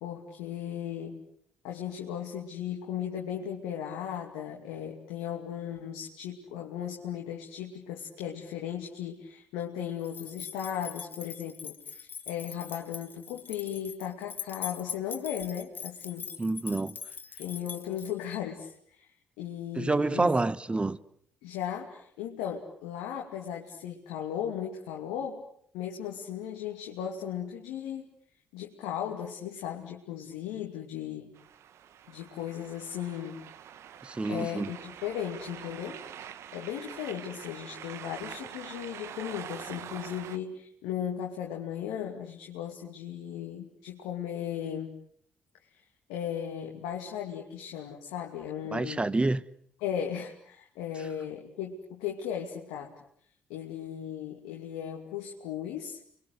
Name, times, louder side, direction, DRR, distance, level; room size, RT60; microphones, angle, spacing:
voice 1, 0.0-1.2 1.6-16.3 17.4-20.3 21.4-25.5 25.7-28.1 28.5-31.3 32.1-33.4 34.3-36.0 36.5-44.9 46.1-49.1 49.8-52.9 53.5-56.0, left 9 dB, 80° left, 2.7 m, -36 dB
sound 1, 10.0-18.4, left 7 dB, 40° left, 1.9 m, -42 dB
voice 2, 16.4-17.0 19.8-21.0 34.0-34.7 48.7-49.4, right 2 dB, 20° right, 1.3 m, -28 dB
sound 2, 31.4-40.4, right 9 dB, 65° right, 1.4 m, -45 dB
29.5 x 23.5 x 8.0 m
hypercardioid pair, 50°, 5 cm